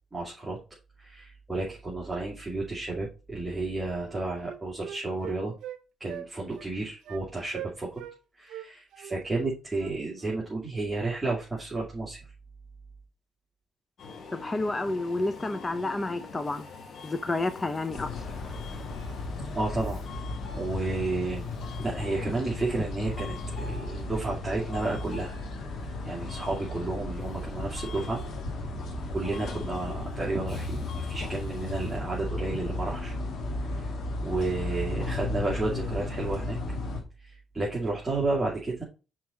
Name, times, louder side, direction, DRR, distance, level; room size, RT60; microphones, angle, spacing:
voice 1, 0.1-0.6 1.0-5.5 6.0-8.0 8.4-12.2 19.5-20.0 20.5-21.5 21.8-25.3 26.0-28.2 29.1-33.1 33.7-33.9 34.2-36.6 37.2-38.8, right 2 dB, 15° right, 2.6 m, -32 dB
Wind instrument woodwind instrument, 3.6-3.7 4.0-5.8 6.1-6.3 6.5-6.7 7.0-7.2 7.5-8.2 8.5-10.4, right 12 dB, 80° right, 0.6 m, -42 dB
Subway metro underground, 14.0-32.0, left 5 dB, 55° left, 1.3 m, -47 dB
voice 2, 14.3-16.7 17.0-18.1, left 2 dB, 25° left, 0.7 m, -30 dB
sound 1, 17.9-37.0, left 2 dB, 75° left, 2.4 m, -35 dB
6.1 x 4.5 x 4.1 m
cardioid pair, 90°, 0 cm